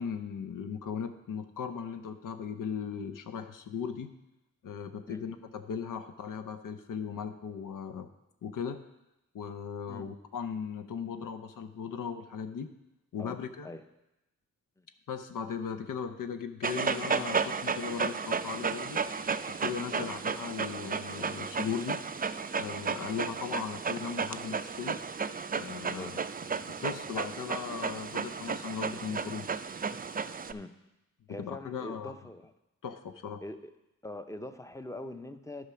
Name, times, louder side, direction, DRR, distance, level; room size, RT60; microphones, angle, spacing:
voice 1, 0.0-4.1 4.6-8.1 8.4-8.8 9.3-12.7 13.1-13.7 15.1-19.0 19.5-22.0 22.6-25.0 25.5-26.2 26.7-29.5 31.4-32.1 32.8-33.4, left 6 dB, 80° left, 8 dB, 0.6 m, -38 dB
Dog, 16.6-30.5, right 5 dB, 30° right, 0.4 m, -33 dB
voice 2, 31.3-32.5 33.4-33.7 34.0-35.7, left 1 dB, 10° left, 9 dB, 0.6 m, -43 dB
10.0 x 5.0 x 5.7 m, 0.93 s
cardioid pair, 60°, 32 cm